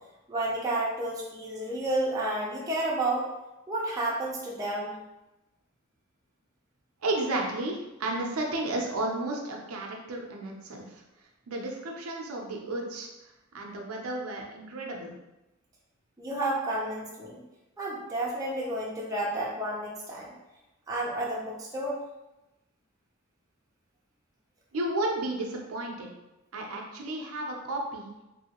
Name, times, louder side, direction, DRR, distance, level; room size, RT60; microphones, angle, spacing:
voice 1, 0.3-3.3 3.7-5.0 16.2-17.4 17.8-20.3 20.9-22.0, right 1 dB, 15° right, -5 dB, 0.5 m, -31 dB
voice 2, 7.0-11.0 11.5-13.1 13.5-15.1 24.7-26.1 26.5-28.1, right 2 dB, 90° right, 0 dB, 0.6 m, -32 dB
3.0 x 2.7 x 2.9 m, 0.97 s
head